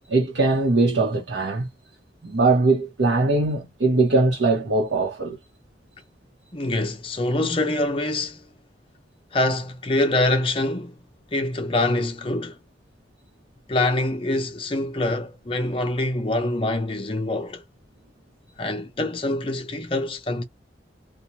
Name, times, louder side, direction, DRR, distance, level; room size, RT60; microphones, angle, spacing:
voice 1, 0.1-1.7 2.2-5.4, right 3 dB, 80° right, 0.8 m, -21 dB
voice 2, 6.5-8.5 9.3-11.0 11.3-12.6 13.7-17.6 18.6-20.4, left 2 dB, 30° left, 0.6 m, -25 dB
2.6 x 2.2 x 2.9 m
head